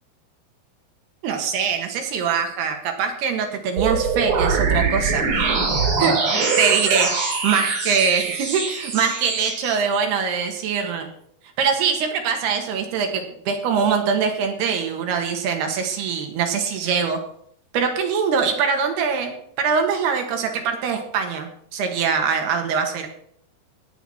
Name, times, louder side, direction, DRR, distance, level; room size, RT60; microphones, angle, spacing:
voice 1, 1.2-5.5 6.0-11.1 11.6-17.2 17.7-23.1, right 6 dB, 75° right, 4 dB, 3.6 m, -23 dB
sound 1, 3.8-9.8, right 4 dB, 40° right, 2.8 m, -23 dB
17.5 x 8.1 x 4.4 m, 0.66 s
omnidirectional pair, 4.8 m